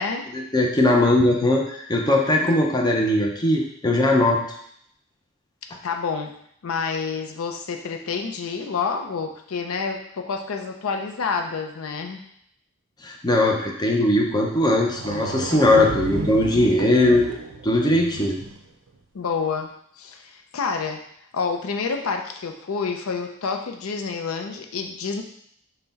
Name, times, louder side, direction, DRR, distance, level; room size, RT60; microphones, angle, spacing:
voice 1, 0.3-4.4 13.0-17.2 17.6-18.4, left 1 dB, 20° left, 1 dB, 0.5 m, -19 dB
voice 2, 5.8-6.3 6.6-12.2 19.1-19.7 20.0-21.0 21.3-25.2, left 5 dB, 80° left, 4 dB, 0.5 m, -28 dB
sound 1, 14.5-14.6 14.9-18.6, right 3 dB, 70° right, 0.5 m, -32 dB
5.7 x 2.2 x 4.0 m, 0.68 s
head